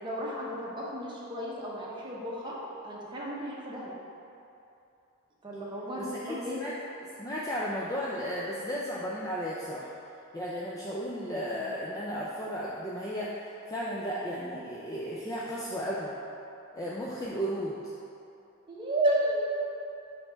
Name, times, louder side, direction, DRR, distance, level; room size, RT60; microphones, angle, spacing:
voice 1, 0.0-2.6 2.8-3.9 5.4-6.6 18.7-19.5, right 1 dB, 25° right, -5 dB, 1.0 m, -32 dB
voice 2, 6.0-6.7 7.2-9.9 10.3-16.1 16.7-17.8, equal, 15° left, -6 dB, 0.5 m, -34 dB
5.6 x 4.3 x 4.5 m, 2.8 s
head